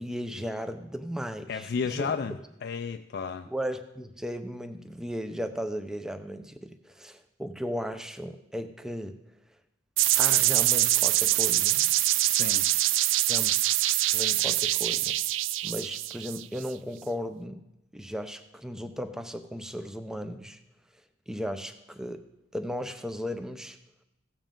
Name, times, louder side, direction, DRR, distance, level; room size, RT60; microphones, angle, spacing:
voice 1, 0.0-2.2 3.5-9.1 10.2-11.9 13.3-13.5 14.1-15.2 15.6-17.7 17.9-20.6 21.3-22.3 22.5-23.8, equal, 5° right, 8 dB, 0.5 m, -36 dB
voice 2, 1.5-3.5 12.3-12.7, left 5 dB, 55° left, 7 dB, 0.3 m, -33 dB
sound 1, 10.0-16.7, right 14 dB, 80° right, 0.3 m, -24 dB
16.5 x 7.1 x 3.7 m, 0.91 s
head